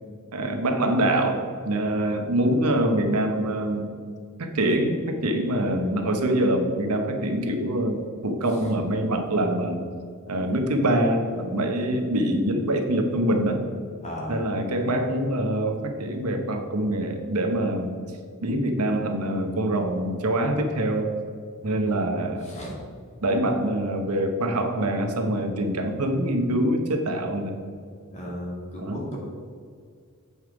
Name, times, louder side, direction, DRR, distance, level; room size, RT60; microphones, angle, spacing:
voice 1, 0.3-3.9 4.4-9.8 10.3-13.6 14.3-17.9 18.4-21.1 21.6-22.5 23.2-27.6 28.8-29.0, right 1 dB, 85° right, 5 dB, 1.0 m, -24 dB
voice 2, 14.0-14.4 21.6-22.1 22.4-22.7 23.4-23.6 28.1-29.2, equal, 30° left, -3 dB, 2.1 m, -36 dB
8.0 x 5.6 x 4.8 m, 2.2 s
head